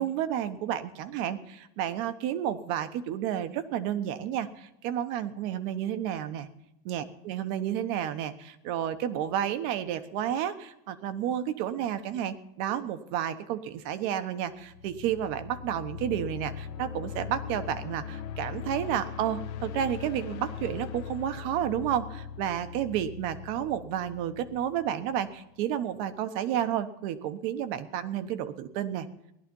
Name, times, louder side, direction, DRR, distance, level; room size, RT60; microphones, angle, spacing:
voice 1, 0.0-6.5 6.8-29.1, right 10 dB, 60° right, 11 dB, 1.2 m, -31 dB
sound 1, 14.6-25.3, left 7 dB, 70° left, 1.1 m, -40 dB
17.0 x 11.0 x 5.4 m, 0.82 s
supercardioid pair, 140°, 30 cm